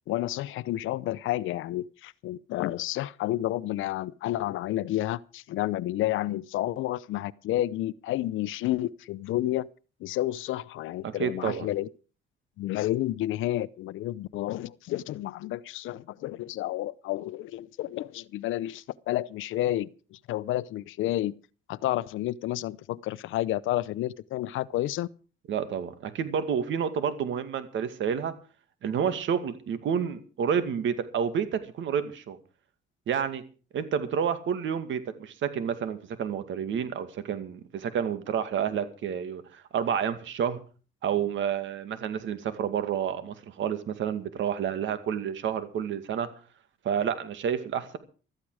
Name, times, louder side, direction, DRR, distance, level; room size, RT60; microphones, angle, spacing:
voice 1, 0.1-9.7 10.0-11.9 12.6-21.3 21.7-25.1, left 14 dB, 85° left, 0.7 m, -30 dB
voice 2, 11.0-11.7 25.5-28.3 28.8-32.4 33.1-33.4 33.7-40.6 41.0-46.3 46.8-48.0, right 8 dB, 75° right, 2.2 m, -29 dB
15.0 x 13.5 x 4.9 m
cardioid pair, 90°, 20 cm